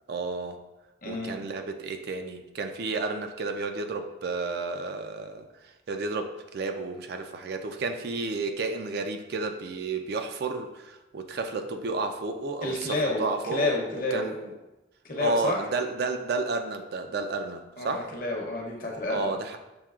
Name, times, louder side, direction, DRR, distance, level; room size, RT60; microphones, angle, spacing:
voice 1, 0.1-0.6 1.1-13.8 14.1-14.3 15.2-18.1 19.1-19.6, right 3 dB, 55° right, 6 dB, 0.3 m, -31 dB
voice 2, 1.0-1.3 12.6-14.3 15.0-15.6 17.8-19.3, left 2 dB, 45° left, -1 dB, 0.8 m, -30 dB
7.0 x 2.8 x 2.4 m, 1.0 s
head